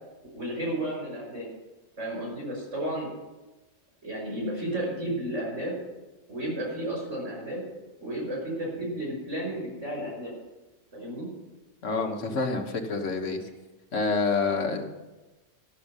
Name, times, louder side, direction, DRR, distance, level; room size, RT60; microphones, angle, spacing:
voice 1, 0.3-1.5 2.0-3.1 4.0-5.7 6.3-7.6 8.0-10.3 10.9-11.3, right 1 dB, 75° right, -2 dB, 6.0 m, -32 dB
voice 2, 11.8-13.4 13.9-14.8, left 4 dB, 75° left, 4 dB, 1.7 m, -27 dB
12.5 x 6.8 x 9.1 m, 1.1 s
omnidirectional pair, 1.3 m